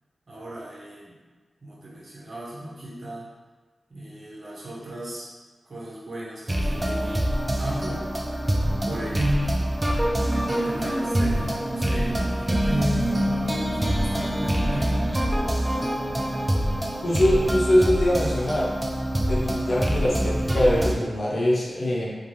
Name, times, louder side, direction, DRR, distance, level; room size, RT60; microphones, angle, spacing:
voice 1, 0.3-1.2 1.6-3.3 3.9-5.3 5.6-7.3 7.6-8.1 8.8-9.7 10.4-15.2, right 1 dB, 60° right, -7 dB, 0.9 m, -34 dB
sound 1, 6.5-20.9, right 1 dB, 20° right, 0.4 m, -25 dB
voice 2, 17.0-18.8 19.3-22.1, left 1 dB, 55° left, -4 dB, 0.7 m, -22 dB
2.5 x 2.3 x 3.1 m, 1.3 s
wide cardioid pair, 75°, 0 cm